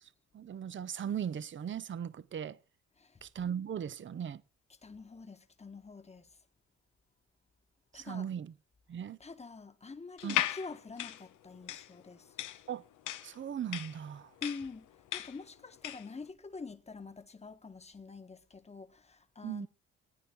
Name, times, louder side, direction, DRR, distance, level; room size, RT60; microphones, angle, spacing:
voice 1, 0.0-2.6 3.2-4.4 7.9-8.5 8.9-9.2 10.2-10.4 12.7-12.8 13.2-14.3 19.4-19.7, right 8 dB, 40° right, 0.7 m, -38 dB
voice 2, 4.8-6.3 7.9-8.3 9.2-12.3 14.4-14.9 15.1-19.7, left 4 dB, 20° left, 1.4 m, -46 dB
sound 1, 10.2-16.1, left 12 dB, 85° left, 1.1 m, -37 dB
16.5 x 9.3 x 3.7 m
cardioid pair, 90°, 30 cm